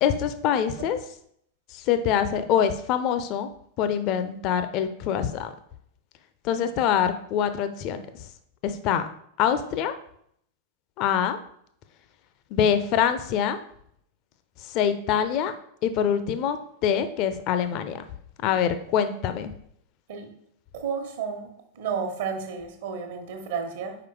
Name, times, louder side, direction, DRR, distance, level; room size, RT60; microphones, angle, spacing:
voice 1, 0.0-1.0 1.7-3.5 3.8-5.5 6.4-8.2 8.6-9.1 9.4-9.9 11.0-11.4 12.5-13.6 14.6-15.5 15.8-18.1 18.4-19.5, left 8 dB, 40° left, 10 dB, 0.6 m, -25 dB
voice 2, 20.7-21.5 21.7-24.0, right 6 dB, 55° right, 5 dB, 1.2 m, -31 dB
5.0 x 4.8 x 4.7 m, 0.69 s
figure-of-eight pair, 90°, 0 cm